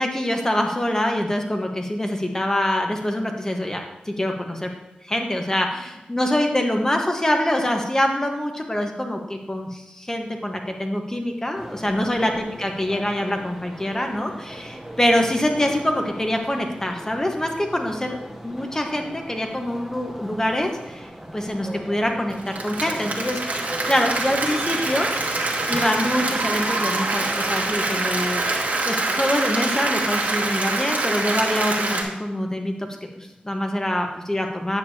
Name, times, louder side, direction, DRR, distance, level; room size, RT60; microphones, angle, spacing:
voice 1, 0.0-4.7 5.0-18.2 18.4-21.1 21.3-25.1 25.7-32.7 33.2-34.8, left 1 dB, 20° left, 3 dB, 1.2 m, -25 dB
sound 1, 11.5-28.7, equal, 5° right, 0.9 m, -39 dB
Applause, 22.3-32.0, right 2 dB, 60° right, 1.5 m, -25 dB
9.3 x 6.9 x 2.8 m, 0.94 s
cardioid pair, 60°, 3 cm